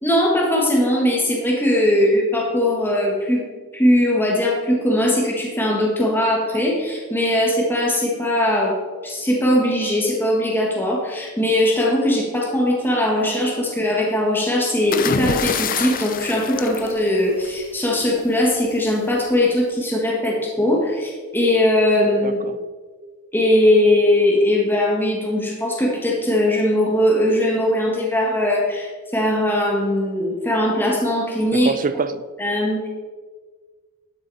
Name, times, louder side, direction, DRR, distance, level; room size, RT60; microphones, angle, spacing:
voice 1, 0.0-3.4 3.7-8.7 9.0-22.4 23.3-31.7 32.4-32.9, left 1 dB, 10° left, -3 dB, 1.7 m, -20 dB
sound 1, 14.9-17.7 18.9-19.2, left 6 dB, 40° left, 0.5 m, -26 dB
voice 2, 22.2-22.6 31.5-32.2, right 4 dB, 35° right, 13 dB, 0.5 m, -25 dB
12.0 x 7.8 x 4.2 m, 1.4 s
head